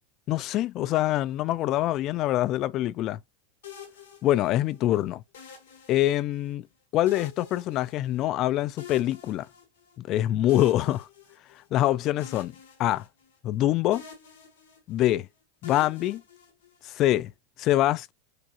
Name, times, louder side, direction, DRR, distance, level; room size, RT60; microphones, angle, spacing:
voice 1, 0.3-3.2 4.2-5.2 5.9-6.7 6.9-9.5 10.0-11.1 11.7-12.5 12.8-13.1 13.4-14.0 14.9-15.3 15.6-16.2 16.8-17.3 17.6-18.1, left 14 dB, 45° left, 0.3 m, -25 dB
sound 1, 3.6-4.8 5.3-6.5 7.1-8.4 8.8-10.0 10.5-11.8 12.2-13.6 13.9-15.1 15.6-17.0, left 7 dB, 75° left, 1.6 m, -47 dB
4.7 x 2.4 x 2.8 m
hypercardioid pair, 100°, 0 cm